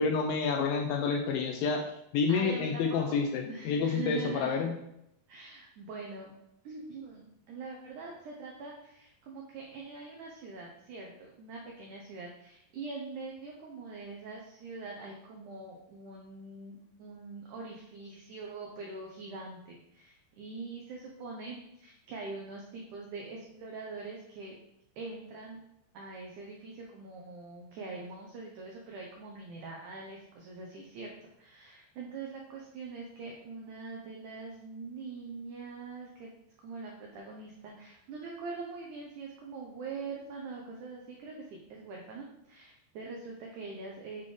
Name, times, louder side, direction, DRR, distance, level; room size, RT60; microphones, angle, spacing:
voice 1, 0.0-1.8 2.1-4.8, left 5 dB, 80° left, 2 dB, 2.1 m, -29 dB
voice 2, 2.3-3.2 3.5-4.6 5.3-6.3 6.6-24.6 25.0-25.6 25.9-31.1 31.4-36.3 36.6-44.2, right 4 dB, 90° right, -1 dB, 1.7 m, -43 dB
7.2 x 4.1 x 3.2 m, 0.83 s
omnidirectional pair, 4.5 m